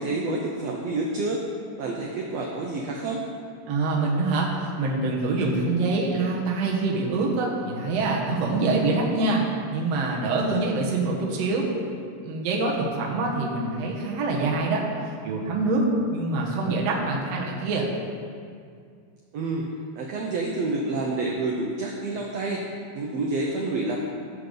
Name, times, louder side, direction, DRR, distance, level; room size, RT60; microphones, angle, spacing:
voice 1, 0.0-1.4 1.8-3.2 19.3-19.7 20.0-22.6 22.9-24.0, right 2 dB, 80° right, 0 dB, 1.5 m, -28 dB
voice 2, 3.7-4.5 4.8-9.4 9.7-11.7 12.2-14.8 15.2-17.9, right 3 dB, 60° right, -2 dB, 2.1 m, -25 dB
14.5 x 6.9 x 3.9 m, 2.2 s
omnidirectional pair, 4.0 m